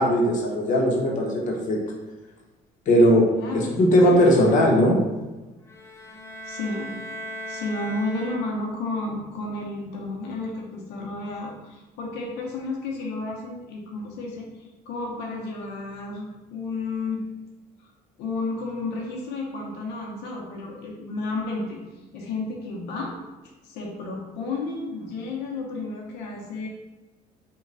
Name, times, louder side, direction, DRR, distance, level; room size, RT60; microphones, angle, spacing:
voice 1, 0.0-1.8 2.9-3.3 3.8-5.0, equal, 50° left, -1 dB, 0.8 m, -18 dB
voice 2, 3.4-4.4 4.7-4.9 6.4-6.9 7.5-14.5 14.9-17.2 18.2-21.8 22.1-23.1 23.6-26.7, left 3 dB, 85° left, -1 dB, 0.7 m, -32 dB
sound 1, 5.7-8.9, equal, 15° left, 0.3 m, -38 dB
3.1 x 2.2 x 3.8 m, 1.1 s
cardioid pair, 110°, 17 cm